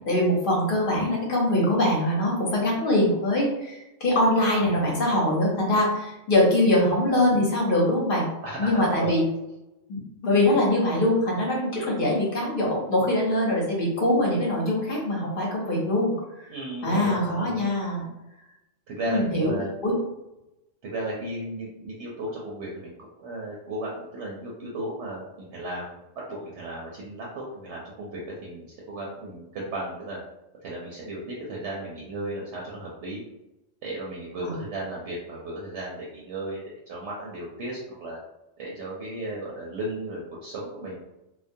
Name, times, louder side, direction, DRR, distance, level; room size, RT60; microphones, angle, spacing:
voice 1, 0.0-8.3 8.6-9.2 9.9-16.1 16.8-18.1 19.1-19.5 19.8-20.0 34.4-34.5, left 1 dB, 50° left, -3 dB, 0.8 m, -23 dB
voice 2, 8.4-9.1 16.5-17.7 18.9-19.7 20.8-25.2 25.5-26.0 26.3-30.2 30.6-33.2 33.8-38.2 38.6-40.9, right 1 dB, 70° right, -4 dB, 0.8 m, -35 dB
2.2 x 2.2 x 2.6 m, 0.93 s
omnidirectional pair, 1.3 m